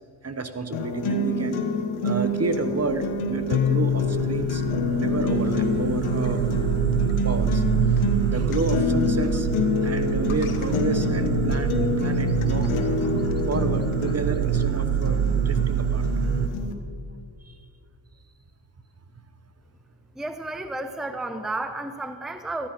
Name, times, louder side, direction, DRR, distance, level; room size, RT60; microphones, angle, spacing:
voice 1, 0.2-1.6 2.0-4.6 5.0-6.6 7.2-7.6 8.2-9.5 9.8-12.7 13.2-16.0 17.5-17.6, right 4 dB, 30° right, 10 dB, 1.1 m, -30 dB
sound 1, 0.7-16.7, left 3 dB, 80° left, 1.3 m, -28 dB
sound 2, 2.9-16.5, right 7 dB, 85° right, 0.9 m, -26 dB
sound 3, 3.5-11.2, left 10 dB, 55° left, 0.6 m, -31 dB
voice 2, 20.2-22.7, right 2 dB, ahead, 8 dB, 0.8 m, -32 dB
14.5 x 10.5 x 5.1 m, 2.2 s
cardioid pair, 60°, 48 cm